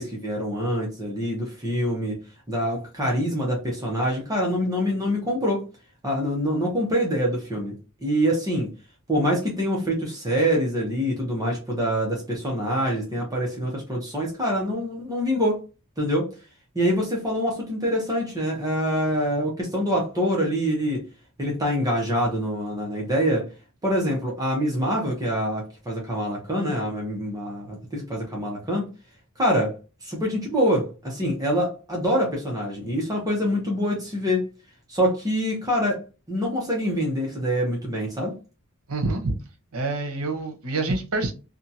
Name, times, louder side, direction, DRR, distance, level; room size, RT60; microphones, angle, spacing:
voice 1, 0.0-2.2 2.5-5.7 6.0-7.7 8.0-8.7 9.1-15.6 16.0-16.3 16.7-21.0 21.4-23.5 23.8-28.9 29.4-29.7 30.0-34.5 34.9-38.4, equal, 15° right, 0.8 m, -25 dB
voice 2, 38.9-39.4 39.7-41.3, right 2 dB, 75° right, 0.9 m, -26 dB
2.7 x 2.3 x 2.7 m
head